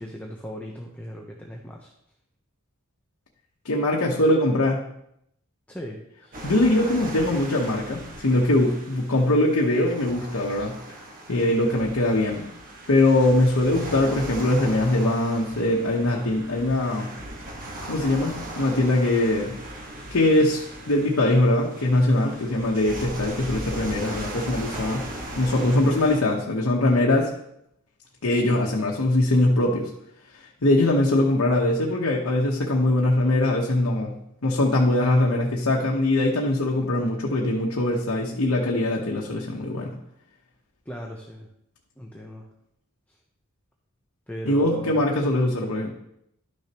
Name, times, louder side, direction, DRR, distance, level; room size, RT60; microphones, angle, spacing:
voice 1, 0.0-1.9 5.7-6.5 40.9-41.5 42.0-42.5 44.3-45.0, equal, 5° left, -1 dB, 0.8 m, -38 dB
voice 2, 3.6-4.8 6.4-10.8 11.3-12.5 12.9-17.1 17.9-19.5 20.1-25.1 25.3-27.3 28.2-29.9 30.3-34.1 34.4-39.9 44.4-45.9, left 1 dB, 75° left, -2 dB, 1.1 m, -22 dB
sound 1, 6.3-26.2, right 1 dB, 40° right, 1.4 m, -38 dB
11.5 x 6.4 x 3.0 m, 0.77 s
head